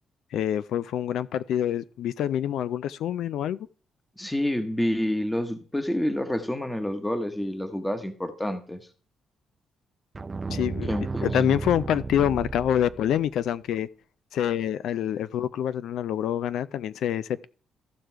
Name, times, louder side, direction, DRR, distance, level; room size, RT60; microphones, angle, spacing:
voice 1, 0.3-3.6 10.5-11.0 11.2-13.9 14.3-17.5, left 10 dB, 75° left, 0.4 m, -26 dB
voice 2, 4.2-8.9 10.9-11.4, left 1 dB, 10° left, 1.0 m, -28 dB
sound 1, 10.1-13.3, right 4 dB, 25° right, 0.4 m, -33 dB
14.5 x 5.0 x 4.5 m
cardioid pair, 90°, 0 cm